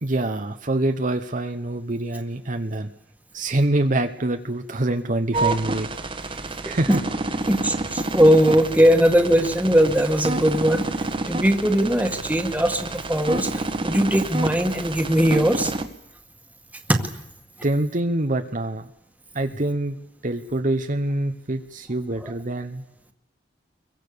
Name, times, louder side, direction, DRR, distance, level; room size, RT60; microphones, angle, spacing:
voice 1, 0.0-2.9 3.3-5.9 6.3-6.9 17.6-18.9 19.3-20.0 20.2-22.8, right 1 dB, 45° right, 6 dB, 1.1 m, -25 dB
sound 1, 5.3-15.8, right 2 dB, 30° right, 1.5 m, -29 dB
voice 2, 7.5-10.9 11.3-15.7 16.9-17.1 22.2-22.3, equal, 10° right, 5 dB, 1.9 m, -19 dB
26.0 x 23.0 x 6.9 m, 0.83 s
head